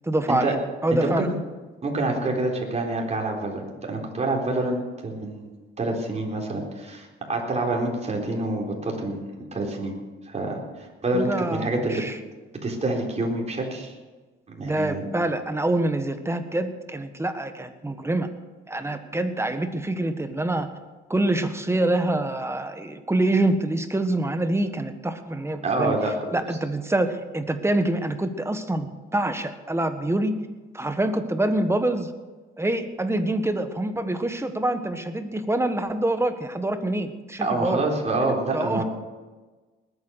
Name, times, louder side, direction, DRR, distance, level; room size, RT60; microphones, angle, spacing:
voice 1, 0.0-0.5 0.8-1.3 11.1-12.2 14.6-18.3 18.7-20.7 21.1-26.0 26.3-30.3 30.7-32.1 32.6-37.8 38.5-38.8, right 1 dB, 15° right, 8 dB, 1.5 m, -26 dB
voice 2, 0.9-1.3 1.8-5.5 5.8-9.2 9.5-9.9 10.3-12.0 12.6-13.9 14.5-15.1 25.6-26.3 37.4-38.8, right 2 dB, 35° right, -1 dB, 4.0 m, -27 dB
20.0 x 9.2 x 6.4 m, 1.3 s
cardioid pair, 90°, 20 cm